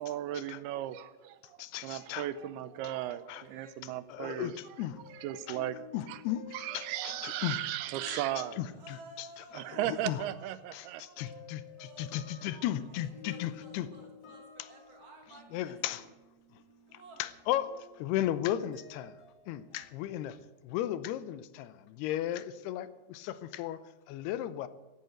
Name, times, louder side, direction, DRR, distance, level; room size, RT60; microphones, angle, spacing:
voice 1, 0.0-4.5 5.2-5.8 6.1-6.2 6.5-8.6 9.5-11.0, right 13 dB, 80° right, 14 dB, 2.6 m, -36 dB
voice 2, 1.6-2.3 3.3-3.4 4.1-5.0 5.5-5.6 5.9-7.6 8.1-8.2 8.6-10.2 10.7-13.9 14.6-14.7 15.5-16.1 16.9-19.2 19.5-20.4 20.6-23.8 24.1-24.7, left 12 dB, 85° left, 14 dB, 2.7 m, -36 dB
voice 3, 3.3-3.8 8.7-12.5 12.9-16.1 16.9-17.2, right 2 dB, 40° right, 1 dB, 3.3 m, -55 dB
sound 1, 4.9-10.8 11.2-20.4, left 7 dB, 30° left, 2.7 m, -54 dB
16.0 x 8.9 x 7.9 m, 1.2 s
omnidirectional pair, 4.6 m